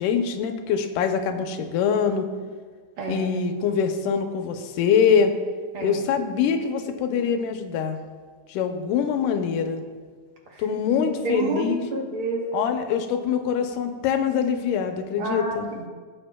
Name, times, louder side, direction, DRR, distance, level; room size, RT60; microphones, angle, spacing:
voice 1, 0.0-2.3 3.1-5.3 5.8-8.0 8.5-9.8 10.6-11.8 12.5-15.7, left 7 dB, 90° left, 6 dB, 2.3 m, -24 dB
voice 2, 3.0-3.5 5.7-6.0 10.5-10.6 10.9-12.5 15.2-15.9, right 2 dB, 60° right, -1 dB, 1.4 m, -29 dB
16.5 x 7.5 x 2.2 m, 1.5 s
omnidirectional pair, 3.6 m